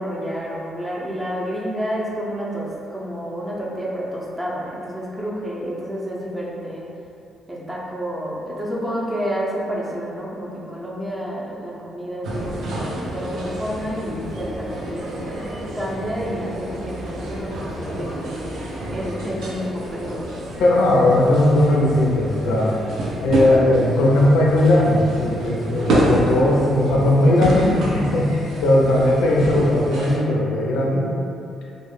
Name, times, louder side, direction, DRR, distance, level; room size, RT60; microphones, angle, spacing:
voice 1, 0.0-6.9 7.5-12.8 13.1-18.3 18.9-20.2, equal, 15° right, -5 dB, 0.5 m, -29 dB
sound 1, 12.2-30.2, right 1 dB, 70° right, 0.4 m, -28 dB
voice 2, 20.6-22.7 23.2-31.1, left 1 dB, 90° left, -3 dB, 0.4 m, -18 dB
2.1 x 2.0 x 3.1 m, 2.6 s
cardioid pair, 90°, 0 cm